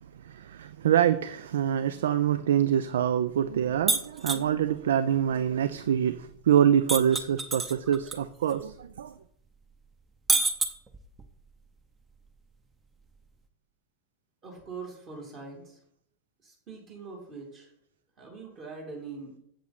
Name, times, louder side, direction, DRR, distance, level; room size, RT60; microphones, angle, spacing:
voice 1, 0.3-9.1, right 9 dB, 60° right, 13 dB, 0.4 m, -25 dB
sound 1, 3.9-4.4 6.9-8.2 8.5-8.6 10.3-11.2, right 3 dB, 15° right, 0.9 m, -27 dB
voice 2, 14.4-15.8 16.4-17.7 18.2-19.4, right 4 dB, 35° right, -1 dB, 2.8 m, -42 dB
8.0 x 7.7 x 4.1 m, 0.69 s
figure-of-eight pair, 90°, 0 cm